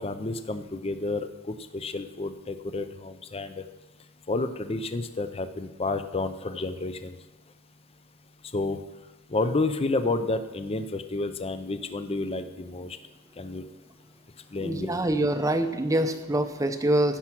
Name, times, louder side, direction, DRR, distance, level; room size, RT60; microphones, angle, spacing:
voice 1, 0.0-3.6 4.3-7.2 8.5-8.8 9.3-13.0 13.4-13.6 14.5-14.9, left 2 dB, 25° left, 11 dB, 0.5 m, -30 dB
voice 2, 14.6-17.2, right 1 dB, 15° right, 8 dB, 0.6 m, -25 dB
15.5 x 5.8 x 6.0 m, 1.2 s
head